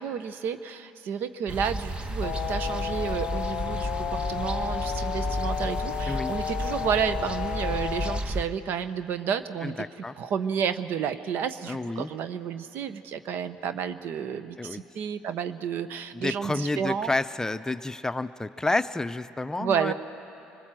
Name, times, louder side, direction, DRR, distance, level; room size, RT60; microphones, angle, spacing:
voice 1, 0.0-9.9 10.2-17.1 19.6-19.9, right 7 dB, 65° right, 12 dB, 1.0 m, -31 dB
sound 1, 1.5-8.4, right 1 dB, 25° right, 1.2 m, -32 dB
sound 2, 2.2-8.2, left 11 dB, 60° left, 0.5 m, -32 dB
voice 2, 9.6-10.1 11.7-12.1 14.6-14.8 16.1-19.9, left 2 dB, 15° left, 12 dB, 0.6 m, -30 dB
25.0 x 21.0 x 7.6 m, 2.9 s
hypercardioid pair, 65°, 4 cm